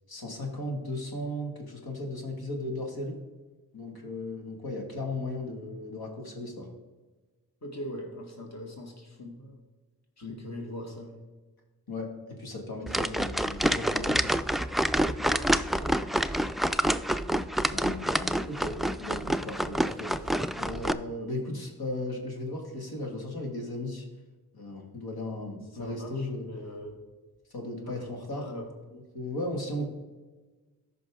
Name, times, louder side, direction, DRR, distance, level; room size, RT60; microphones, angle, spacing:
voice 1, 0.1-3.2 3.7-6.7 10.2-10.4 11.9-14.4 17.7-24.1 24.5-26.5 27.5-28.4 28.9-29.9, left 1 dB, 70° left, 1 dB, 2.1 m, -36 dB
voice 2, 7.6-9.6 10.2-11.2 15.2-16.2 25.7-27.0 27.8-28.7, equal, 45° left, 1 dB, 2.0 m, -41 dB
sound 1, 12.9-20.9, right 1 dB, ahead, 0.3 m, -27 dB
13.5 x 5.4 x 3.6 m, 1.3 s
cardioid pair, 45°, 38 cm